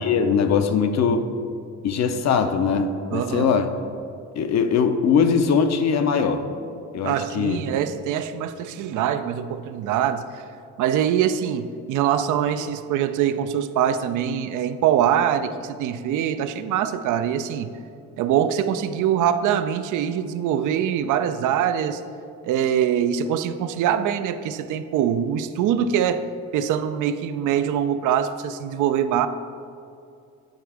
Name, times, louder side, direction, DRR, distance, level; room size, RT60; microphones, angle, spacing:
voice 1, 0.0-1.3 1.8-3.7 4.4-6.4 6.9-7.6, left 6 dB, 60° left, 8 dB, 0.6 m, -21 dB
voice 2, 3.1-3.5 7.0-10.4 10.8-17.7 18.2-22.0 22.4-26.3 26.5-29.3, right 9 dB, 80° right, 11 dB, 0.5 m, -23 dB
9.7 x 3.4 x 4.8 m, 2.5 s
cardioid pair, 90°, 30 cm